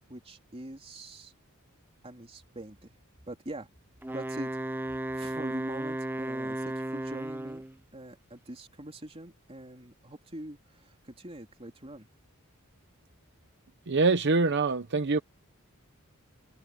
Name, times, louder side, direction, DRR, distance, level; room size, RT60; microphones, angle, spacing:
voice 1, 0.1-1.3 2.0-2.9 3.3-3.7 4.1-7.6 7.9-12.1, right 1 dB, 25° right, 3.3 m, -43 dB
Wind instrument woodwind instrument, 4.0-7.8, right 1 dB, 10° right, 0.7 m, -34 dB
voice 2, 13.9-15.2, right 3 dB, 55° right, 0.8 m, -24 dB
open air
head